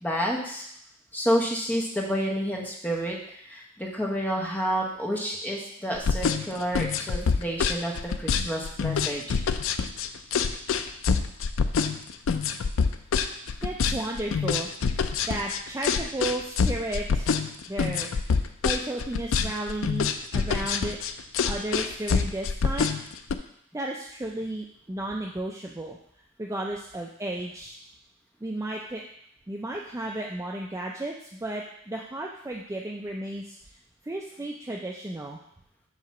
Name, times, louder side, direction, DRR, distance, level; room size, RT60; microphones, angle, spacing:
voice 1, 0.0-0.6 1.1-9.4, equal, 10° left, -2 dB, 1.0 m, -29 dB
sound 1, 5.9-23.3, left 5 dB, 70° left, 0.4 m, -26 dB
voice 2, 13.6-17.3 17.7-21.0 21.4-23.0 23.3-23.4 23.7-26.0 26.4-27.8 28.4-29.0 29.5-33.6 34.0-35.4, right 1 dB, 15° right, -1 dB, 0.4 m, -34 dB
7.3 x 2.9 x 5.9 m, 0.71 s
head